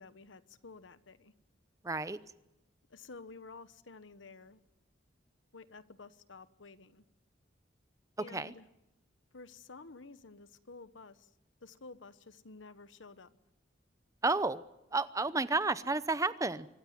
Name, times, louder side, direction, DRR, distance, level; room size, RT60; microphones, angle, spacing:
voice 1, 0.0-1.3 2.9-4.6 5.5-7.0 8.2-8.7 9.3-11.3 11.6-13.4, left 3 dB, 90° left, 13 dB, 1.1 m, -52 dB
voice 2, 1.8-2.2 8.3-8.5 14.2-14.6 14.9-16.7, right 3 dB, 15° right, 14 dB, 0.8 m, -31 dB
25.0 x 15.5 x 9.4 m, 0.91 s
head